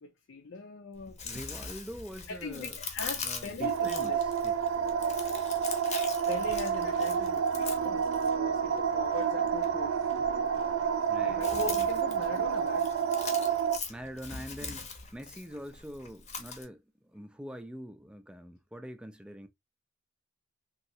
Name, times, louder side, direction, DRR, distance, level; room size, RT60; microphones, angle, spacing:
voice 1, 0.0-1.2 2.3-4.2 6.3-9.9 11.2-12.9, left 3 dB, 70° left, 0.5 m, -40 dB
Chewing mastication, 0.9-16.6, left 5 dB, 35° left, 0.8 m, -42 dB
voice 2, 1.2-2.8 3.1-4.6 11.1-11.5 13.9-16.8 17.1-19.5, equal, 5° right, 0.4 m, -44 dB
sound 1, 3.6-13.8, right 7 dB, 75° right, 0.3 m, -29 dB
sound 2, 6.0-13.7, right 2 dB, 55° right, 0.8 m, -46 dB
3.1 x 2.8 x 2.7 m
head